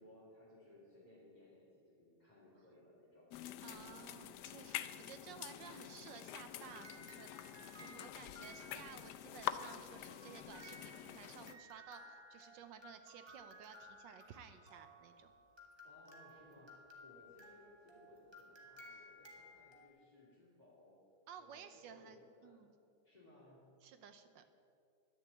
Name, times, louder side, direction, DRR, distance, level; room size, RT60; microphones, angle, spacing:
voice 1, 0.0-4.0 15.8-16.7 17.0-21.0 21.4-22.6 23.0-23.7, left 1 dB, 20° left, -10 dB, 2.8 m, -62 dB
sound 1, 3.3-11.5, left 12 dB, 80° left, 0.9 m, -47 dB
voice 2, 3.6-7.5 7.8-15.3 21.3-22.7 23.8-24.4, right 7 dB, 70° right, 9 dB, 1.3 m, -55 dB
sound 2, 6.6-9.3 10.1-19.9, equal, 15° right, 1.2 m, -58 dB
11.0 x 7.0 x 8.7 m, 2.5 s
omnidirectional pair, 2.2 m